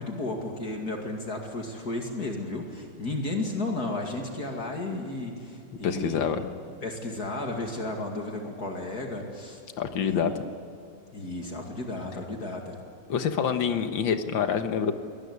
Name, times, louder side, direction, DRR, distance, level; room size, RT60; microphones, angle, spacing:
voice 1, 0.0-6.3 6.8-9.6 10.0-10.4 11.1-12.8, left 2 dB, 55° left, 2 dB, 2.8 m, -33 dB
voice 2, 5.8-6.4 9.8-10.3 13.1-14.9, left 7 dB, 90° left, 8 dB, 2.0 m, -26 dB
23.0 x 19.0 x 9.6 m, 2.5 s
omnidirectional pair, 2.0 m